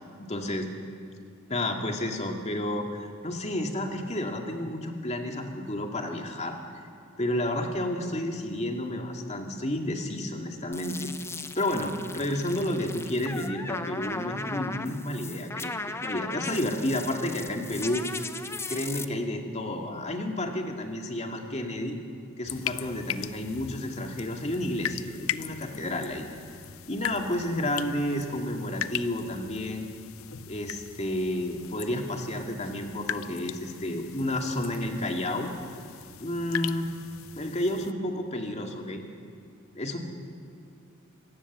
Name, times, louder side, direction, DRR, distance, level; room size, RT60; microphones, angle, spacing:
voice 1, 0.2-0.7 1.5-6.6 7.2-11.1 11.5-18.0 18.7-22.0 22.4-26.3 26.9-29.9 30.5-35.5 36.2-36.9 37.4-39.0 39.7-40.0, left 1 dB, 30° left, 3 dB, 2.2 m, -31 dB
sound 1, 10.7-19.1, left 3 dB, 10° left, 0.7 m, -37 dB
sound 2, 22.5-37.9, left 10 dB, 80° left, 0.6 m, -39 dB
25.0 x 18.0 x 7.3 m, 2.5 s
head